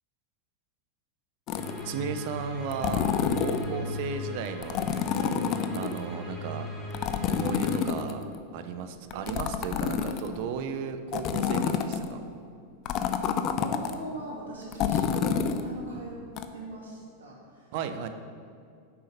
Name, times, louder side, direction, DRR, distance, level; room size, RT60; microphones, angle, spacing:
sound 1, 1.5-1.9 2.7-3.7 4.6-6.0 6.9-8.4 9.1-10.4 11.1-12.1 12.9-13.9 14.7-15.6 16.4-16.5, left 8 dB, 45° left, 0.6 m, -28 dB
sound 2, 1.5-7.8, left 1 dB, 10° left, 2.3 m, -39 dB
voice 1, 1.8-3.0 3.4-4.9 5.7-6.7 7.3-8.2 8.5-12.2 17.7-18.1, right 6 dB, 60° right, 9 dB, 0.7 m, -35 dB
voice 2, 5.2-5.8 9.1-9.4 13.0-16.2 16.5-17.7, right 2 dB, 90° right, -4 dB, 2.4 m, -40 dB
6.8 x 5.7 x 6.7 m, 2.3 s
hypercardioid pair, 105°, 0 cm